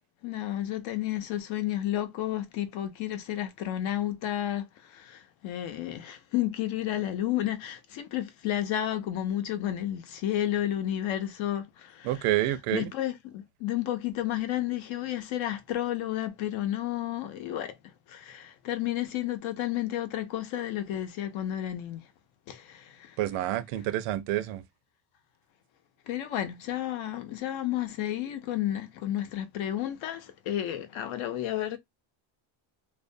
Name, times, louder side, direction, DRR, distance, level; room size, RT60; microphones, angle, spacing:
voice 1, 0.2-12.3 12.7-17.7 18.1-22.1 22.5-23.2 26.1-31.8, left 12 dB, 70° left, 0.7 m, -32 dB
voice 2, 12.0-12.9 23.2-24.6, right 14 dB, 85° right, 0.6 m, -28 dB
2.4 x 2.2 x 2.6 m
cardioid pair, 145°, 50 cm